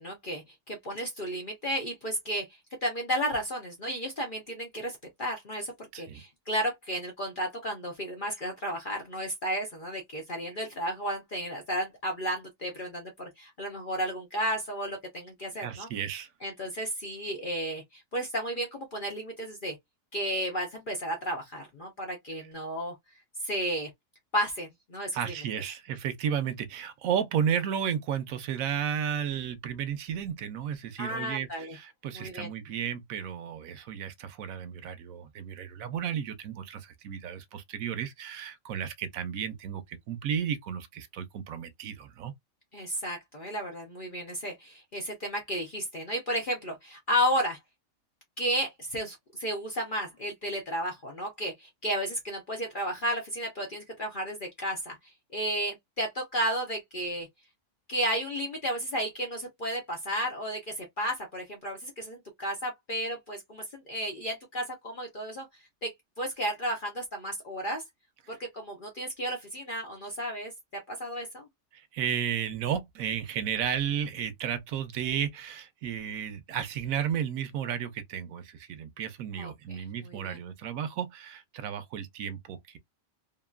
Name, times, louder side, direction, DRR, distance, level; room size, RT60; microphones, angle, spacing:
voice 1, 0.0-2.5 2.8-15.9 16.4-19.8 20.1-22.9 23.4-23.9 24.3-25.2 31.0-31.8 32.1-32.5 42.7-47.6 48.4-55.0 55.3-57.3 57.9-65.5 65.8-67.8 68.3-70.5 70.9-71.5 79.4-80.4, equal, 45° left, 0.8 m, -33 dB
voice 2, 5.9-6.2 15.6-16.3 25.1-42.3 71.7-82.8, right 8 dB, 85° right, 1.1 m, -33 dB
2.9 x 2.6 x 2.3 m
omnidirectional pair, 1.4 m